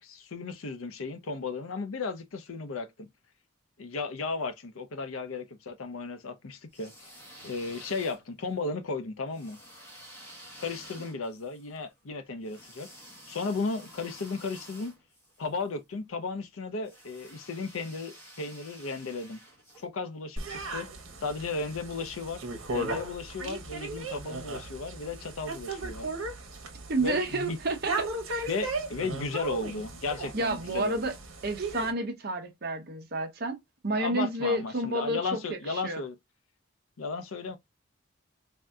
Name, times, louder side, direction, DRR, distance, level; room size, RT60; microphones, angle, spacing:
voice 1, 0.0-3.1 3.8-7.1 7.4-9.6 10.6-12.9 13.3-14.9 15.4-19.4 19.8-20.9 21.2-22.4 22.7-26.1 27.0-27.6 28.5-31.0 33.9-36.1 37.0-37.6, left 4 dB, 80° left, 0.6 m, -35 dB
sound 1, 6.6-8.5 9.3-15.7 16.8-19.9, equal, 10° left, 1.0 m, -51 dB
sound 2, 20.4-31.9, right 2 dB, 85° right, 0.9 m, -36 dB
voice 2, 26.9-28.5 30.3-31.1 31.4-33.6 33.8-36.0, right 2 dB, 50° right, 0.7 m, -30 dB
3.5 x 2.7 x 2.2 m
head